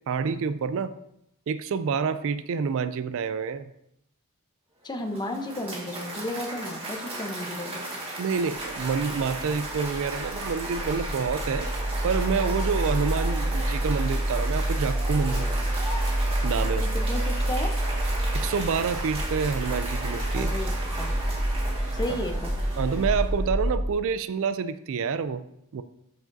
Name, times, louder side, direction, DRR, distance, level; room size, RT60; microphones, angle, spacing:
voice 1, 0.1-0.9 1.5-3.6 8.2-11.7 12.0-15.5 16.4-16.9 18.3-20.5 22.8-25.4 25.7-25.8, right 5 dB, 65° right, 13 dB, 0.4 m, -28 dB
voice 2, 4.8-7.8 16.8-17.7 20.3-21.1 21.9-22.5, left 1 dB, 20° left, 5 dB, 0.7 m, -33 dB
Cheering / Applause, 4.8-23.5, right 2 dB, 25° right, 1.7 m, -36 dB
sound 1, 8.6-23.9, right 1 dB, 10° right, 1.3 m, -28 dB
13.0 x 4.9 x 2.6 m, 0.79 s
head